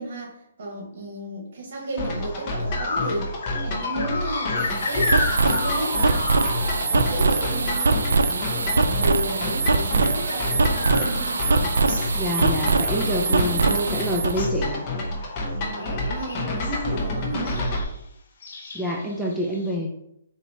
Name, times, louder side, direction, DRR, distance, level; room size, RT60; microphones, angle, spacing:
voice 1, 0.0-3.3 3.6-11.4 13.5-13.8 15.6-17.7, right 1 dB, 60° right, -1 dB, 1.5 m, -33 dB
sound 1, 2.0-2.2 2.7-8.8 9.1-13.9 14.1-14.7 15.0-15.3 15.5-16.8 17.4-17.9 18.4-19.7, left 3 dB, 65° left, 0.9 m, -33 dB
sound 2, 2.0-17.8, left 1 dB, 30° left, 0.8 m, -29 dB
sound 3, 4.6-14.4, right 3 dB, 85° right, 0.4 m, -23 dB
voice 2, 12.1-14.8 18.7-19.9, equal, 5° right, -3 dB, 0.4 m, -27 dB
4.1 x 2.7 x 2.8 m, 0.79 s
hypercardioid pair, 150°, 0 cm